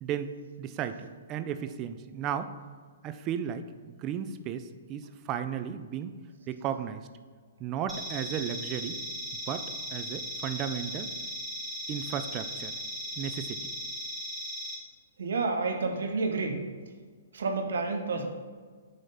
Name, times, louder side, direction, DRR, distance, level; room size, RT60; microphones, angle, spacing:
voice 1, 0.0-0.3 0.6-2.5 3.0-6.2 6.5-7.1 7.6-9.0 9.3-11.1 11.9-12.8 13.2-13.6, right 9 dB, 30° right, 10 dB, 0.4 m, -34 dB
sound 1, 7.9-14.7, equal, 10° right, 1.6 m, -37 dB
voice 2, 15.2-16.7 17.3-18.3, right 3 dB, 70° right, 4 dB, 0.9 m, -29 dB
9.0 x 3.5 x 4.1 m, 1.6 s
hypercardioid pair, 125°, 0 cm